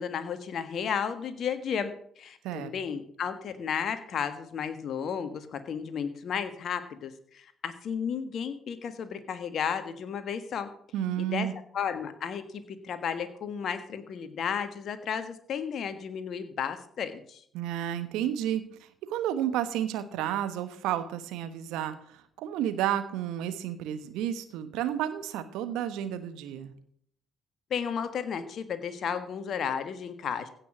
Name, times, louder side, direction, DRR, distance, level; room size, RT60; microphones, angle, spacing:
voice 1, 0.0-10.7 11.2-11.5 11.7-12.4 12.8-17.4 27.7-30.5, left 7 dB, 55° left, 10 dB, 1.5 m, -33 dB
voice 2, 10.9-11.5 17.5-26.7, right 11 dB, 70° right, 11 dB, 1.1 m, -31 dB
16.0 x 6.2 x 6.2 m, 0.64 s
hypercardioid pair, 45°, 0 cm